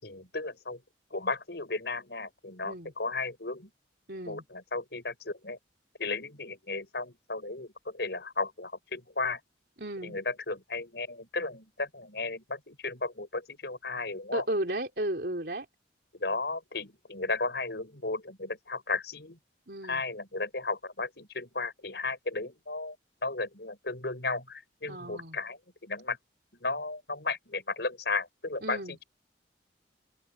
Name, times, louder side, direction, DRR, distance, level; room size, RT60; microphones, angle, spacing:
voice 1, 0.0-0.8 1.1-3.7 4.3-5.6 6.0-9.4 10.0-14.4 16.1-19.4 19.8-22.9 23.2-26.2 26.6-29.0, left 3 dB, 65° left, 6.1 m, -34 dB
voice 2, 4.1-4.4 9.8-10.2 14.3-15.7 19.7-20.0 24.9-25.4 28.6-29.0, right 1 dB, 60° right, 3.8 m, -34 dB
open air
head